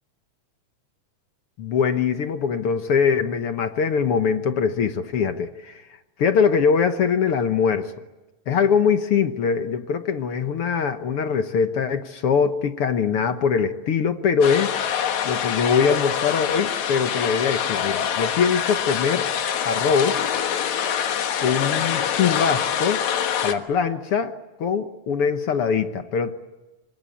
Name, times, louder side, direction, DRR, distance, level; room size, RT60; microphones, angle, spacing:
voice 1, 1.6-5.8 6.2-7.9 8.5-19.3 19.6-20.2 21.4-23.0 23.4-24.3 24.6-26.4, left 6 dB, 60° left, 8 dB, 1.9 m, -22 dB
sound 1, 14.4-23.5, left 8 dB, 75° left, 2.8 m, -25 dB
27.5 x 24.5 x 8.7 m, 1.1 s
omnidirectional pair, 3.4 m